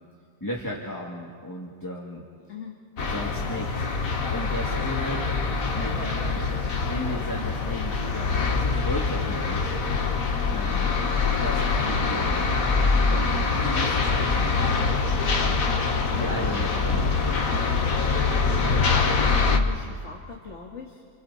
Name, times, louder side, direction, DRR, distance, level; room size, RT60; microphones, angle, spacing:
voice 1, 0.4-2.2 3.1-3.9 4.3-5.3 5.7-6.4 6.8-9.7 10.5-11.0 11.4-12.5 13.5-15.4 16.1-18.2, left 1 dB, 15° left, -2 dB, 2.3 m, -35 dB
sound 1, 3.0-19.6, left 4 dB, 80° left, 1.8 m, -24 dB
voice 2, 5.7-6.3 7.0-7.2 15.1-15.7 16.1-17.1 18.4-18.7 19.1-21.0, left 4 dB, 55° left, -1 dB, 2.1 m, -41 dB
29.5 x 29.5 x 4.2 m, 2.2 s
omnidirectional pair, 1.4 m